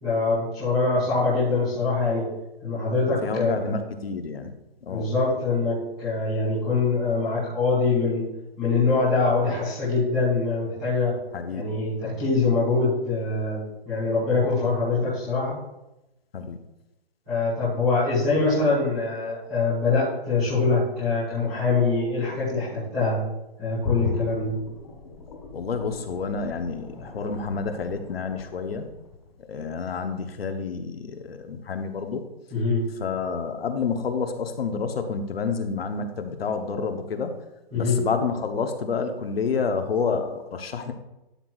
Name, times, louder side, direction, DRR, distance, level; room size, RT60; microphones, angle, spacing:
voice 1, 0.0-2.3 2.6-3.6 4.9-8.3 8.6-11.1 11.5-15.5 17.3-23.2 23.6-24.5 32.5-32.9 37.7-38.0, left 3 dB, ahead, -21 dB, 0.4 m, -24 dB
voice 2, 3.2-4.5 4.8-5.1 11.3-11.6 16.3-16.6 25.5-28.9 29.5-32.2 33.0-37.3 37.7-40.9, left 5 dB, 70° left, 7 dB, 1.1 m, -29 dB
sound 1, 23.8-29.6 30.0-30.1, left 5 dB, 45° left, 1.8 m, -37 dB
12.0 x 5.9 x 2.4 m, 0.94 s
hypercardioid pair, 160°, 31 cm